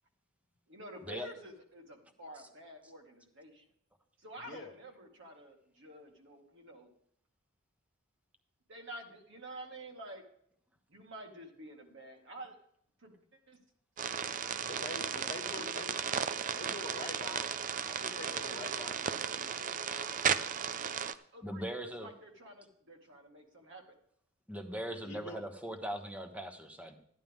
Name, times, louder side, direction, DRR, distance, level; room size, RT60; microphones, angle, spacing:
voice 1, 0.7-3.6 4.2-6.9 8.7-10.3 10.9-12.6 13.0-13.6 14.3-14.8 15.0-16.7 18.4-19.4 21.3-24.0, right 1 dB, 60° right, 2 dB, 2.1 m, -50 dB
voice 2, 4.4-4.7 14.6-15.9 16.5-17.5 17.9-20.2 24.9-25.4, left 2 dB, 40° left, 1 dB, 1.3 m, -46 dB
sound 1, 14.0-21.1, right 7 dB, 40° right, 0.4 m, -35 dB
voice 3, 21.4-22.1 24.5-27.0, equal, 5° right, 6 dB, 1.0 m, -40 dB
13.0 x 10.5 x 3.6 m, 0.68 s
head